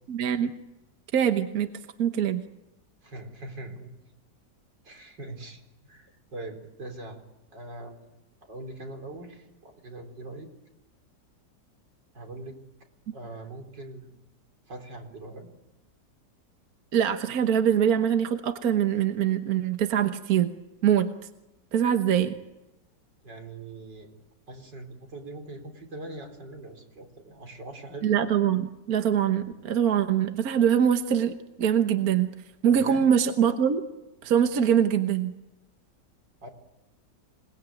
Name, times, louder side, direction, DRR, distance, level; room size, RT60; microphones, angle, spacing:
voice 1, 0.1-0.5 1.1-1.7 2.0-2.4 16.9-20.5 20.8-21.1 21.7-22.4 28.0-32.3 32.6-33.8 34.2-35.3, right 9 dB, 60° right, 7 dB, 1.6 m, -23 dB
voice 2, 3.0-3.9 4.8-5.6 5.9-7.2 7.5-8.1 8.4-10.5 12.1-12.6 13.1-14.2 14.7-15.5 23.2-24.1 24.5-28.1 32.7-33.1 36.4-36.5, right 2 dB, 85° right, 3 dB, 4.8 m, -42 dB
27.0 x 19.5 x 9.1 m, 0.97 s
omnidirectional pair, 1.9 m